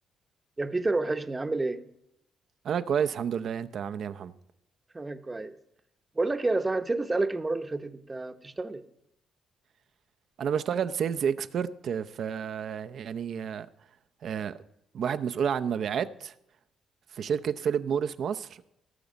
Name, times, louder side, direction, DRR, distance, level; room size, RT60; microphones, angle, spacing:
voice 1, 0.6-1.8 4.9-5.5 6.1-8.8, right 2 dB, 20° right, 0.9 m, -29 dB
voice 2, 2.6-4.3 10.4-13.7 14.2-14.6 14.9-16.3 17.1-18.6, right 7 dB, 60° right, 0.6 m, -30 dB
17.5 x 7.0 x 5.2 m
cardioid pair, 90°, 0 cm